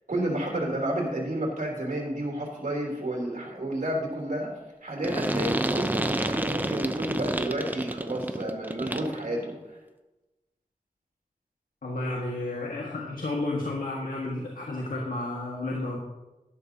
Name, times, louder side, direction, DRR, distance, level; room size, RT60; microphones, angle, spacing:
voice 1, 0.1-4.5 4.8-9.5, right 1 dB, 75° right, -1 dB, 3.3 m, -30 dB
sound 1, 5.0-9.2, right 1 dB, 15° right, 0.7 m, -29 dB
voice 2, 11.8-16.0, left 2 dB, 90° left, -2 dB, 1.6 m, -32 dB
12.0 x 11.5 x 2.8 m, 1.1 s
wide cardioid pair, 70°, 14 cm